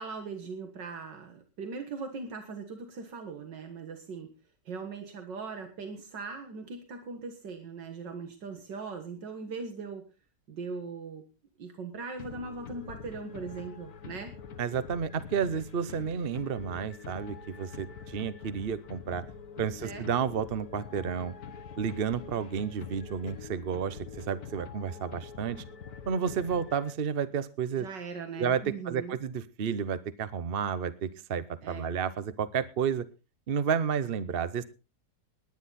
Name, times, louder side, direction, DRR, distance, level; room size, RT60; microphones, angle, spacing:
voice 1, 0.0-4.3 4.7-10.0 10.5-11.2 11.6-14.3 19.8-20.1 27.8-29.2 31.6-31.9, right 4 dB, 75° right, 5 dB, 2.2 m, -40 dB
sound 1, 12.2-27.2, left 6 dB, 60° left, 1.6 m, -45 dB
voice 2, 14.6-19.2 19.6-21.3 21.8-25.6 26.1-27.9 28.4-33.1 33.5-34.6, right 7 dB, 50° right, 14 dB, 0.6 m, -31 dB
20.0 x 9.7 x 4.1 m, 0.32 s
omnidirectional pair, 1.9 m